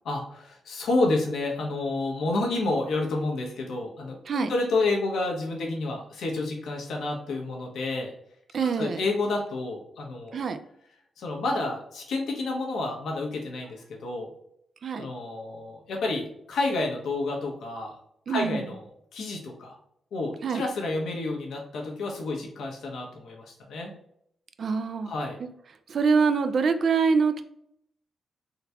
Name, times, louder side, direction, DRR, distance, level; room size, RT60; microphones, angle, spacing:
voice 1, 0.0-8.1 8.6-10.4 11.2-14.3 15.0-17.9 18.3-18.8 19.1-19.8 20.1-23.9 25.1-25.4, left 2 dB, 85° left, 0 dB, 0.9 m, -29 dB
voice 2, 8.5-9.0 10.3-10.6 14.8-15.1 18.3-18.7 20.4-20.6 24.6-25.1 25.9-27.4, right 5 dB, 60° right, 10 dB, 0.3 m, -25 dB
3.7 x 2.3 x 2.8 m, 0.72 s
cardioid pair, 90°, 0 cm